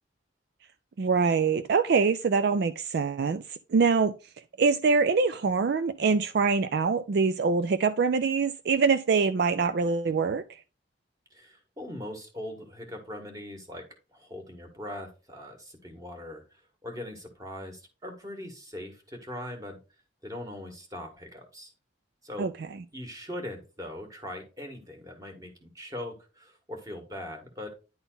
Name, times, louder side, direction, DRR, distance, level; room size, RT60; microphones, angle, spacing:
voice 1, 1.0-4.1 4.6-10.4 22.4-22.5, right 5 dB, 60° right, 0.4 m, -24 dB
voice 2, 11.3-16.4 16.8-19.8 20.2-21.7 22.2-22.5 22.9-27.7, left 1 dB, 20° right, 1.8 m, -41 dB
10.5 x 3.9 x 4.0 m
head